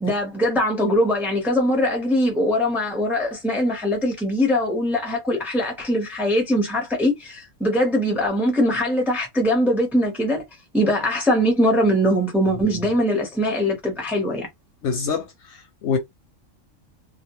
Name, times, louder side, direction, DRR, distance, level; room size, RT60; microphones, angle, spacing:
voice 1, 0.0-10.4 10.7-14.5, equal, ahead, 0.5 m, -21 dB
voice 2, 14.8-16.0, left 6 dB, 65° left, 0.8 m, -26 dB
2.3 x 2.1 x 2.9 m
omnidirectional pair, 1.4 m